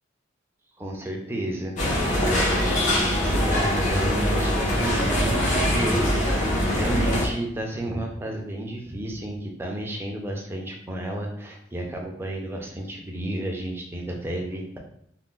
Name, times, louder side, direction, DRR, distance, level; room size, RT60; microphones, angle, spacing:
voice 1, 0.8-1.8 2.2-14.8, right 1 dB, 10° right, 0 dB, 0.4 m, -32 dB
sound 1, 1.8-7.3, left 1 dB, 40° left, 0.6 m, -23 dB
2.4 x 2.0 x 3.6 m, 0.70 s
head